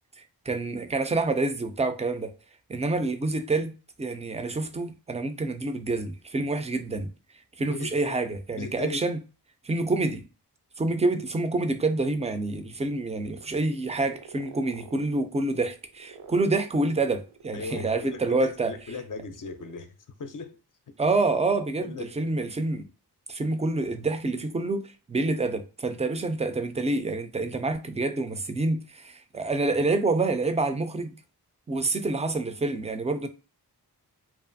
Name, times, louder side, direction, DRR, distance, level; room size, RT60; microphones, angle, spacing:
voice 1, 0.5-2.3 2.7-3.7 4.0-7.1 7.6-9.2 9.6-10.3 10.8-18.7 21.0-22.8 23.3-31.1 31.7-33.3, right 2 dB, 20° right, 0.3 m, -27 dB
voice 2, 7.7-8.2 8.6-9.1 17.5-20.6 21.8-22.2, left 4 dB, 55° left, 0.5 m, -38 dB
sound 1, 12.1-19.0 19.3-19.8, right 6 dB, 75° right, 0.5 m, -49 dB
2.5 x 2.3 x 2.5 m
wide cardioid pair, 60°, 40 cm